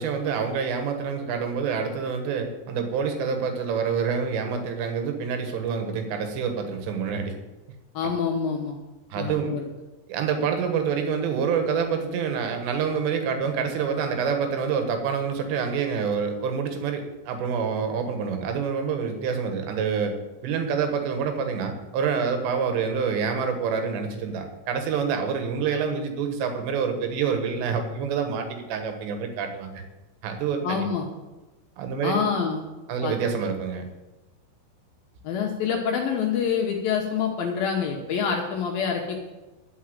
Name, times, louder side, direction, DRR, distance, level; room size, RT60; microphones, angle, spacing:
voice 1, 0.0-7.3 8.0-8.1 9.1-9.6 10.1-20.2 20.4-29.8 30.2-30.9 31.8-32.3 32.9-33.9, right 6 dB, 75° right, 5 dB, 3.5 m, -27 dB
voice 2, 7.9-8.8 9.2-9.6 30.6-31.1 32.0-32.6 33.0-33.1 35.2-39.2, left 6 dB, 70° left, 1 dB, 2.4 m, -26 dB
11.5 x 5.5 x 8.7 m, 1.1 s
omnidirectional pair, 5.2 m